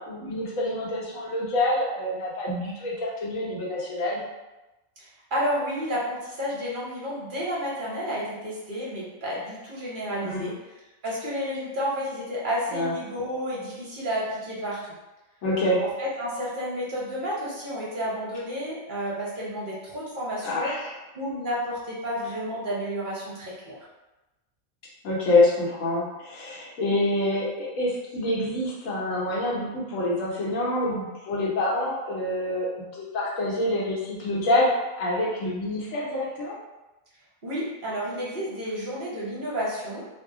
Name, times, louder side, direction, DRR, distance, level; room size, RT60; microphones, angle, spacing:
voice 1, 0.0-4.2 10.2-10.4 12.7-12.9 15.4-15.8 20.4-20.9 25.0-32.7 32.9-34.7 35.0-36.6, left 1 dB, 70° left, -5 dB, 1.2 m, -26 dB
voice 2, 5.0-10.6 11.0-14.8 15.8-20.8 21.1-23.8 37.4-40.1, equal, 45° right, -6 dB, 0.8 m, -31 dB
2.7 x 2.1 x 3.5 m, 1.0 s
omnidirectional pair, 1.5 m